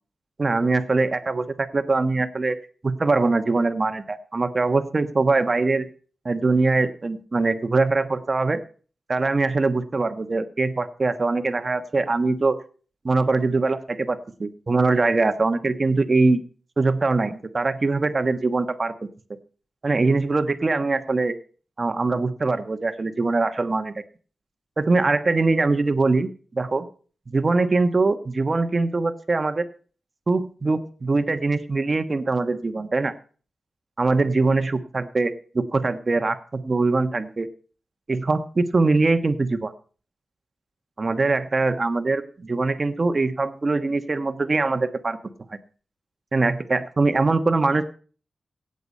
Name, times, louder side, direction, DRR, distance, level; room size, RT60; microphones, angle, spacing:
voice 1, 0.4-2.6 2.8-5.9 6.2-8.6 9.1-12.6 13.0-16.4 16.8-18.9 19.8-21.3 21.8-23.9 24.8-26.9 27.3-29.6 30.3-33.1 34.0-37.5 38.1-39.7 41.0-45.2 46.3-47.9, right 3 dB, 35° right, 9 dB, 1.2 m, -22 dB
17.0 x 8.0 x 5.5 m, 0.41 s
wide cardioid pair, 115°, 0 cm